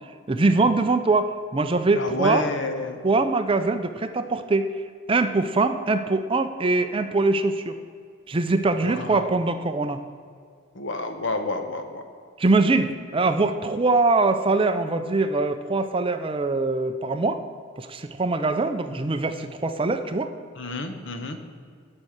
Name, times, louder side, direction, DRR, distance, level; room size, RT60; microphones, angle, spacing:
voice 1, 0.3-2.4 3.0-4.7 5.1-7.8 8.3-10.0 12.4-17.4 17.8-20.3, right 3 dB, 25° right, 9 dB, 0.5 m, -23 dB
voice 2, 2.0-3.0 8.8-9.3 10.7-12.0 20.6-21.4, left 2 dB, 60° left, 7 dB, 1.0 m, -29 dB
12.0 x 5.4 x 6.5 m, 2.2 s
head